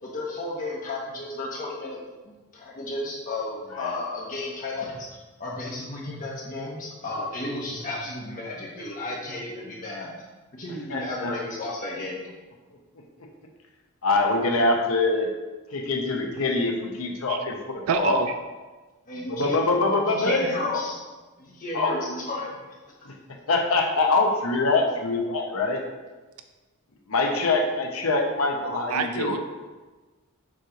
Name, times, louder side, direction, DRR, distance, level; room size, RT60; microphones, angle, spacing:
voice 1, 0.0-2.0 2.2-5.1 5.4-10.1 10.5-12.3 19.1-19.8 20.1-21.0 21.4-22.6 22.8-22.9, left 2 dB, 40° left, -4 dB, 1.0 m, -33 dB
voice 2, 10.9-11.3 13.2-13.3 14.0-15.3 15.7-18.2 19.3-20.8 21.7-22.1 23.0-23.1 23.5-25.8 27.1-29.4, left 3 dB, 70° left, 1 dB, 0.9 m, -24 dB
voice 3, 17.9-18.4 28.9-29.4, right 6 dB, 80° right, 8 dB, 0.4 m, -27 dB
7.4 x 3.1 x 5.1 m, 1.3 s
head